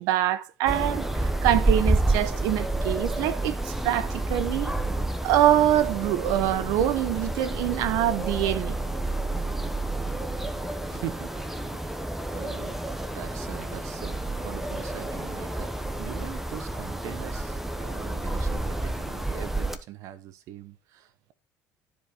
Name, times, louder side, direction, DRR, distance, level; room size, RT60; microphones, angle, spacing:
voice 1, 0.0-4.7 5.2-8.8, right 12 dB, 85° right, 1.0 m, -25 dB
sound 1, 0.7-19.8, right 2 dB, 5° right, 1.0 m, -29 dB
voice 2, 10.9-11.3 12.3-12.8 13.1-21.3, right 12 dB, 65° right, 1.0 m, -41 dB
13.0 x 5.0 x 4.8 m
cardioid pair, 150°, 6 cm